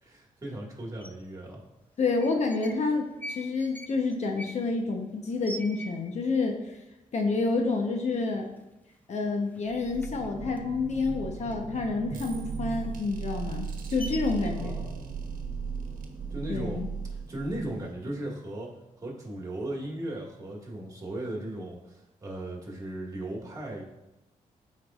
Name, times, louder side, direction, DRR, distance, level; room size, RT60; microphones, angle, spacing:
voice 1, 0.0-1.6 14.5-15.1 16.3-16.8 17.1-18.7 19.0-23.8, right 1 dB, 25° right, -2 dB, 1.9 m, -37 dB
sound 1, 1.0-1.1 2.0-2.8 3.1-6.4 6.7-6.8 7.0-7.5 8.0-8.1 8.4-9.2 9.5-11.8 12.2-14.5, equal, 10° left, 0.5 m, -44 dB
voice 2, 2.0-6.8 7.1-8.5 9.1-14.8 16.5-16.9, left 3 dB, 55° left, 3 dB, 0.9 m, -29 dB
sound 2, 9.6-18.1, right 5 dB, 80° right, 1.0 m, -37 dB
13.0 x 4.6 x 2.5 m, 0.95 s
cardioid pair, 115°, 14 cm